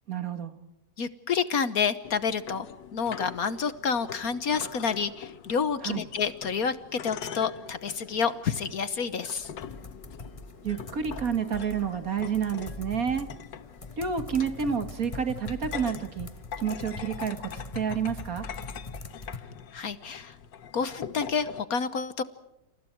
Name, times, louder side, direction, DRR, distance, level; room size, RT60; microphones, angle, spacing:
voice 1, 0.1-0.5 5.8-6.0 10.6-13.3 14.0-16.3 16.6-18.5, right 7 dB, 50° right, 9 dB, 2.1 m, -29 dB
voice 2, 1.0-2.7 2.9-9.5 19.7-20.3 20.7-22.2, left 6 dB, 55° left, 13 dB, 1.4 m, -29 dB
sound 1, 2.0-21.6, left 8 dB, 85° left, 1.8 m, -43 dB
sound 2, 9.4-19.4, left 3 dB, 20° left, 1.1 m, -42 dB
29.5 x 28.5 x 4.6 m, 0.90 s
omnidirectional pair, 1.9 m